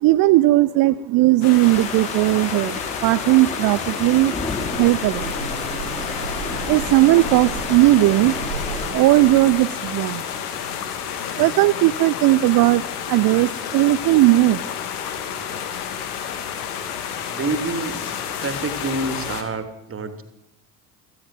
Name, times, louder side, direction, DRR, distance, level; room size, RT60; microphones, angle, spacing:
voice 1, 0.0-4.3 4.8-5.5 6.6-8.4 8.9-10.2 11.3-14.7, right 17 dB, 45° right, 15 dB, 0.9 m, -17 dB
sound 1, 1.4-19.4, left 8 dB, 65° left, 3.1 m, -30 dB
sound 2, 1.6-8.9, left 2 dB, 15° left, 4.6 m, -33 dB
sound 3, 4.5-9.5, right 2 dB, 85° right, 3.7 m, -33 dB
voice 2, 17.3-18.0 18.4-20.2, right 3 dB, 25° right, 9 dB, 3.2 m, -27 dB
24.5 x 16.0 x 7.7 m, 0.84 s
figure-of-eight pair, 60°, 48 cm